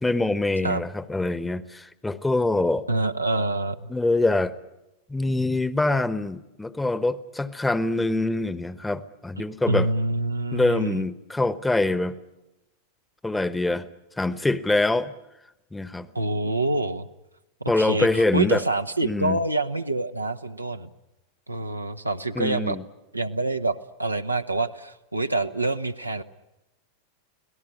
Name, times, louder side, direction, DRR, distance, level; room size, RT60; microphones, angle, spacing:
voice 1, 0.0-2.8 3.9-4.5 5.1-9.9 10.5-12.2 13.2-13.9 14.2-15.1 15.7-16.1 17.7-18.6 19.0-19.4 22.3-22.8, left 2 dB, 5° left, 16 dB, 1.0 m, -24 dB
voice 2, 2.9-3.9 9.7-11.0 16.1-17.1 17.6-20.9 21.5-22.8 23.1-26.2, right 2 dB, 85° right, 7 dB, 0.9 m, -26 dB
25.5 x 18.0 x 9.9 m, 0.95 s
figure-of-eight pair, 90°, 0 cm